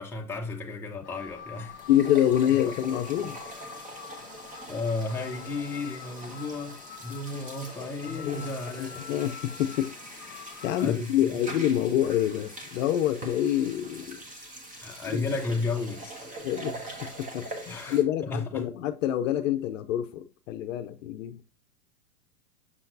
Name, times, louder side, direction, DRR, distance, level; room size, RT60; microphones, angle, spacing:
voice 1, 0.0-1.8 2.5-2.6 4.7-9.0 10.8-11.4 14.8-16.3 17.7-18.8, left 3 dB, 5° left, 0.9 m, -33 dB
sound 1, 1.0-10.9, left 8 dB, 35° left, 1.4 m, -46 dB
sound 2, 1.3-1.4 1.7-18.0, right 1 dB, 15° right, 1.2 m, -43 dB
voice 2, 1.9-3.4 8.1-8.4 8.8-10.4 10.6-14.2 15.1-15.2 16.4-21.4, left 11 dB, 55° left, 0.7 m, -27 dB
6.4 x 5.6 x 2.6 m
hypercardioid pair, 120°, 47 cm